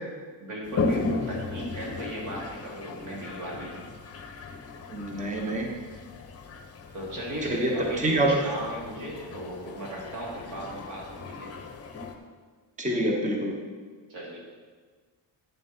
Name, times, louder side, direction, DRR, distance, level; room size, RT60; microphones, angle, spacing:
voice 1, 0.4-3.9 6.9-11.5 14.1-14.4, equal, 85° right, -4 dB, 3.1 m, -37 dB
Toilet flush, 0.6-12.1, left 3 dB, 30° left, 0.9 m, -36 dB
voice 2, 4.9-5.7 7.5-8.4 12.8-13.5, right 1 dB, 15° right, 1 dB, 1.1 m, -26 dB
10.0 x 7.3 x 4.4 m, 1.5 s
cardioid pair, 145°, 45 cm